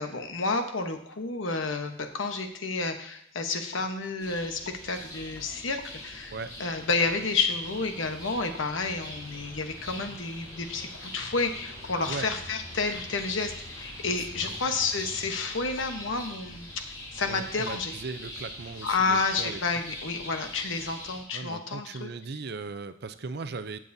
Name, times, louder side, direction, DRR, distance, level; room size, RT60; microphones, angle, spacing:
voice 1, 0.0-6.3 6.6-16.8 17.1-17.9 18.8-22.1, left 4 dB, 80° left, 6 dB, 1.0 m, -30 dB
sound 1, 4.2-21.2, left 1 dB, 20° left, 2.5 m, -43 dB
sound 2, 7.7-15.4, left 1 dB, 65° left, 1.4 m, -52 dB
voice 2, 17.3-19.6 21.3-23.8, right 4 dB, 55° right, 10 dB, 0.5 m, -38 dB
15.0 x 7.4 x 2.7 m, 0.72 s
head